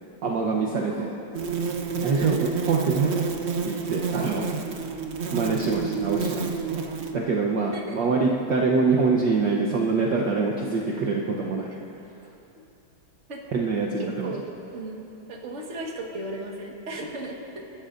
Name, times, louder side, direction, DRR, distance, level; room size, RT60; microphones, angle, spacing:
voice 1, 0.2-1.1 2.0-3.2 3.6-4.4 5.3-6.5 7.1-11.9 13.5-14.3, right 4 dB, 60° right, -2 dB, 1.4 m, -25 dB
voice 2, 0.7-1.2 2.2-2.3 2.8-3.0 4.2-4.5 7.7-8.0 10.6-11.0 11.7-11.8 13.3-13.4 14.0-14.4 14.7-17.6, right 2 dB, 35° right, -1 dB, 1.7 m, -36 dB
sound 1, 1.3-7.1, right 5 dB, 80° right, 0.5 m, -29 dB
29.0 x 13.0 x 2.6 m, 2.8 s
omnidirectional pair, 2.3 m